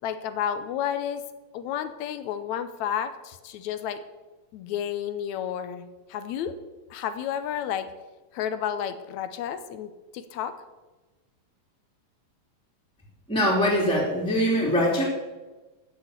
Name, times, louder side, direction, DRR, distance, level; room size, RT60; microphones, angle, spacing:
voice 1, 0.0-1.2 1.5-4.0 4.5-6.5 6.9-7.9 8.3-10.5, left 9 dB, 80° left, 11 dB, 2.1 m, -31 dB
voice 2, 13.3-15.0, equal, ahead, -4 dB, 2.7 m, -22 dB
13.0 x 6.7 x 8.1 m, 1.2 s
omnidirectional pair, 3.3 m